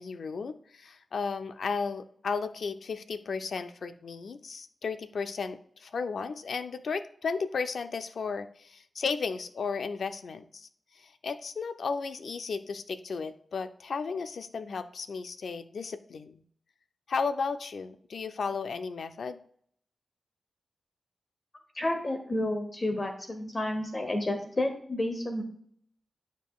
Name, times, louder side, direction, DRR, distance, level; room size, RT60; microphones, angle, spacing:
voice 1, 0.0-10.7 11.0-16.4 17.1-19.4, left 5 dB, 75° left, 10 dB, 0.5 m, -34 dB
voice 2, 21.7-25.4, left 1 dB, 35° left, 5 dB, 0.9 m, -30 dB
11.0 x 5.1 x 2.4 m, 0.62 s
wide cardioid pair, 95°, 0 cm